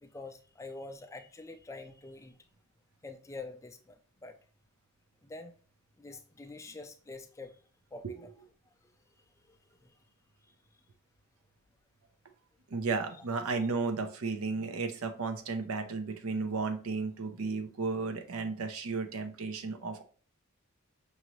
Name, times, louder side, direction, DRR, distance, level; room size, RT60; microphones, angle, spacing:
voice 1, 0.0-2.4 3.0-4.4 5.2-5.5 6.0-7.6 7.9-8.3 8.8-8.9 9.5-10.0 13.2-13.3, left 3 dB, 15° left, 7 dB, 0.3 m, -46 dB
voice 2, 12.7-20.0, right 4 dB, 70° right, 8 dB, 0.6 m, -34 dB
5.9 x 2.6 x 3.0 m, 0.42 s
head